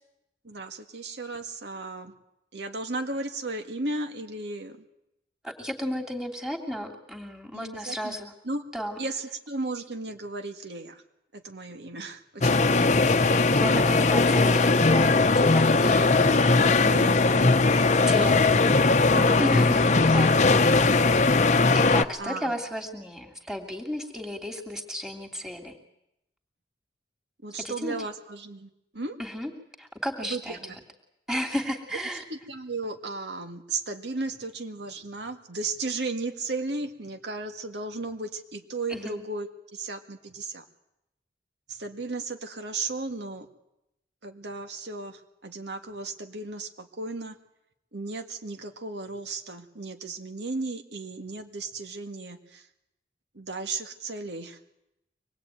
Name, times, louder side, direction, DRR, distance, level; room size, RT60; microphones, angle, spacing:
voice 1, 0.4-2.1 2.5-4.8 7.5-8.2 8.4-8.6 9.0-11.0 11.3-12.9 13.2-13.3 16.8-17.2 18.2-18.4 19.3-19.6 20.1-20.6 22.2-22.5 27.4-28.7 28.9-29.2 30.2-30.8 32.3-39.5 39.7-40.6 41.7-43.5 44.2-47.4 47.9-52.6 53.4-54.6, right 3 dB, 75° right, 6 dB, 1.9 m, -35 dB
voice 2, 5.4-8.3 8.7-9.0 13.5-16.6 17.7-18.4 19.0-19.8 20.1-20.7 21.7-25.7 27.6-28.0 29.2-29.5 29.8-30.8 31.3-32.2 38.9-39.2, equal, 5° right, 1 dB, 2.8 m, -33 dB
sound 1, 12.4-22.0, left 3 dB, 40° left, 0.8 m, -20 dB
25.0 x 20.0 x 9.2 m, 0.86 s
head